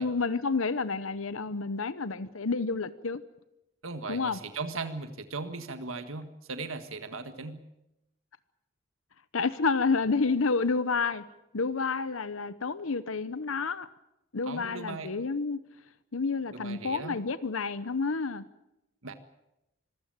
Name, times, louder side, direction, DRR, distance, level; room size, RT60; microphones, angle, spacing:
voice 1, 0.0-3.2 4.1-4.4 9.3-11.2 11.5-13.9 14.3-15.6 16.1-18.4, left 4 dB, 85° left, 15 dB, 0.9 m, -29 dB
voice 2, 3.8-7.6 14.5-15.1 16.5-17.2 19.0-19.1, right 3 dB, 90° right, 9 dB, 1.7 m, -38 dB
25.0 x 15.5 x 9.1 m, 0.90 s
head